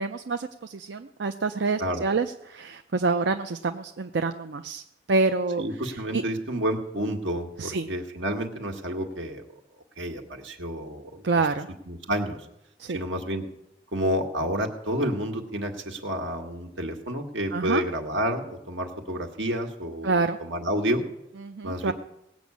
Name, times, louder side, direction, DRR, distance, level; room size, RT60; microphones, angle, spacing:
voice 1, 0.0-4.8 5.1-5.6 5.9-6.2 7.6-7.9 11.2-11.7 12.8-13.0 17.5-17.8 20.0-20.4 21.4-21.9, right 3 dB, 70° right, 6 dB, 0.6 m, -27 dB
voice 2, 5.6-9.4 10.0-11.2 11.9-12.4 12.9-13.4 13.9-21.0 21.6-21.9, equal, 85° right, 3 dB, 1.8 m, -29 dB
18.5 x 6.2 x 8.4 m, 0.83 s
head